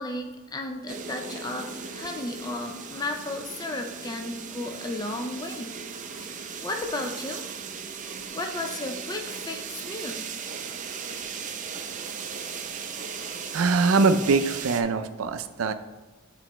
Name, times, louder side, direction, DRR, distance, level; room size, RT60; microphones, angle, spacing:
voice 1, 0.0-5.7 6.2-6.4 6.6-7.4 8.3-10.2, left 2 dB, 20° left, 3 dB, 0.4 m, -34 dB
sound 1, 0.9-14.8, right 6 dB, 40° right, 0.5 m, -37 dB
voice 2, 13.5-15.7, right 4 dB, 90° right, 10 dB, 0.5 m, -23 dB
7.8 x 4.1 x 3.0 m, 1.2 s
head